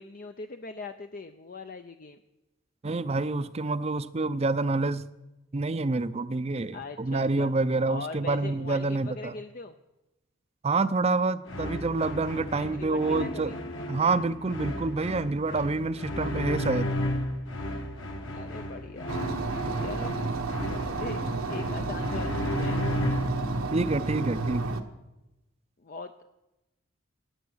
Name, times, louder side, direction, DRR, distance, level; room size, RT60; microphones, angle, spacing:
voice 1, 0.0-2.2 6.7-7.5 7.9-9.8 12.6-13.6 18.3-19.1 19.8-20.2 20.7-21.2 21.5-22.8 25.8-26.1, left 3 dB, 40° left, 7 dB, 0.5 m, -40 dB
voice 2, 2.8-5.1 5.5-9.3 10.6-13.5 13.9-16.9 23.7-24.7, right 3 dB, 30° right, 13 dB, 0.5 m, -27 dB
sound 1, 11.5-23.5, left 1 dB, 60° left, 1.7 m, -33 dB
sound 2, 19.1-24.8, right 3 dB, 80° right, 1.1 m, -31 dB
18.0 x 8.0 x 6.3 m, 0.97 s
head